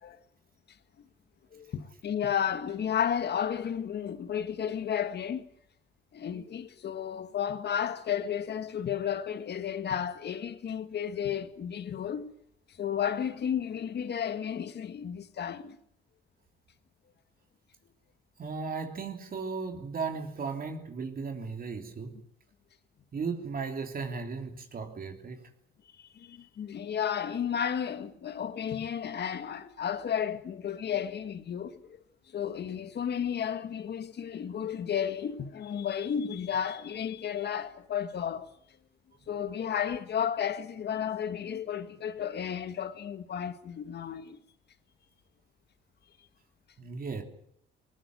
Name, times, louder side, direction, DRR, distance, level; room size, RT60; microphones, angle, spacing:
voice 1, 1.5-5.5 6.1-12.3 12.8-15.8 26.0-31.8 32.3-38.5 39.3-44.4, left 8 dB, 55° left, 1.8 m, -33 dB
voice 2, 18.4-22.2 23.1-25.5 46.8-47.2, right 4 dB, 45° right, 3.2 m, -36 dB
20.5 x 19.5 x 9.4 m
cardioid pair, 90°, 20 cm